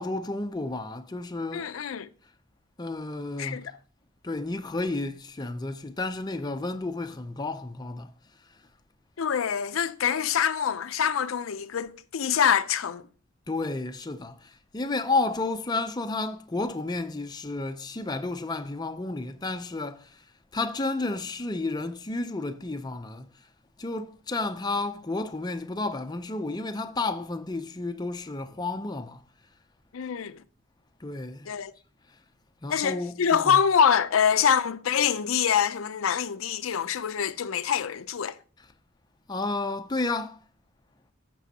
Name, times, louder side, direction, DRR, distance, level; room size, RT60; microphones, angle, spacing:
voice 1, 0.0-1.7 2.8-3.7 4.2-8.1 13.5-20.2 20.5-23.3 23.8-29.2 31.0-31.5 32.6-33.6 39.3-40.4, left 2 dB, 20° left, 0.5 m, -31 dB
voice 2, 1.5-2.1 3.4-3.7 9.2-13.0 29.9-30.4 31.5-31.7 32.7-38.4, left 7 dB, 85° left, 0.5 m, -25 dB
14.0 x 6.1 x 2.8 m
head